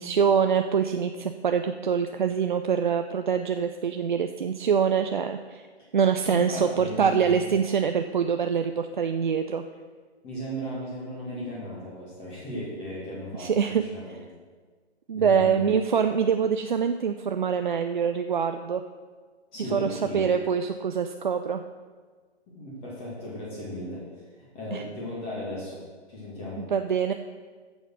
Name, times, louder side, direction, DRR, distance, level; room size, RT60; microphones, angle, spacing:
voice 1, 0.0-5.6 5.9-9.6 13.4-13.8 15.1-18.8 19.7-21.6 24.7-24.8 26.6-27.1, right 7 dB, 45° right, 7 dB, 0.5 m, -25 dB
voice 2, 6.3-7.4 10.2-14.2 15.1-15.7 19.5-20.3 22.5-25.8 26.1-26.6, equal, 15° left, -6 dB, 2.3 m, -36 dB
9.1 x 7.1 x 6.3 m, 1.5 s
figure-of-eight pair, 135°, 33 cm